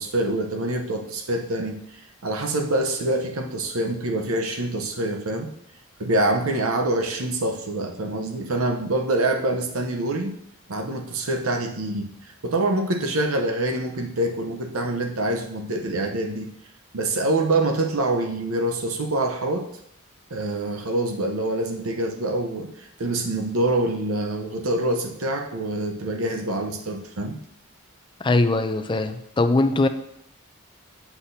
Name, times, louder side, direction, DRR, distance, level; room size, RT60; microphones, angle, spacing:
voice 1, 0.0-1.8 2.2-5.5 6.0-10.3 10.7-12.1 12.4-16.5 16.9-19.7 20.3-27.4, right 2 dB, 80° right, 4 dB, 0.8 m, -25 dB
voice 2, 28.2-29.9, left 2 dB, 20° left, 8 dB, 0.4 m, -21 dB
8.2 x 5.8 x 2.7 m, 0.74 s
head